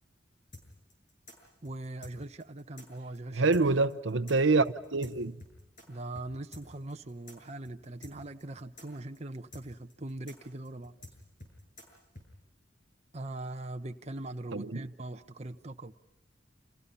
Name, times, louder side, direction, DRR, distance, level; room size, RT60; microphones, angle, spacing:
sound 1, 0.5-5.9 6.1-6.3 6.5-12.3, left 1 dB, 45° left, 7.3 m, -50 dB
voice 1, 1.6-3.5 5.9-10.9 13.1-16.0, right 2 dB, 35° right, 1.0 m, -41 dB
voice 2, 3.3-5.4 14.5-14.8, right 3 dB, 80° right, 0.9 m, -26 dB
30.0 x 27.5 x 5.6 m
head